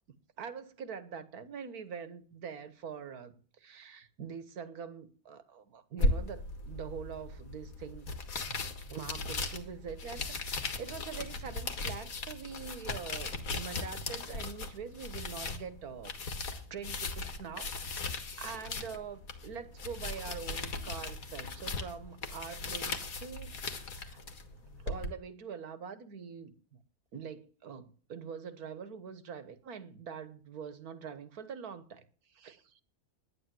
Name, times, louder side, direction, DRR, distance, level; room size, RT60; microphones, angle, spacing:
voice 1, 0.4-8.1 8.5-8.6 8.9-16.1 16.7-24.2 24.8-26.5 27.1-32.0 32.3-32.8, right 6 dB, 80° right, 1.8 m, -44 dB
sound 1, 6.0-25.1, left 3 dB, 70° left, 2.1 m, -37 dB
11.5 x 10.5 x 7.7 m
omnidirectional pair, 1.6 m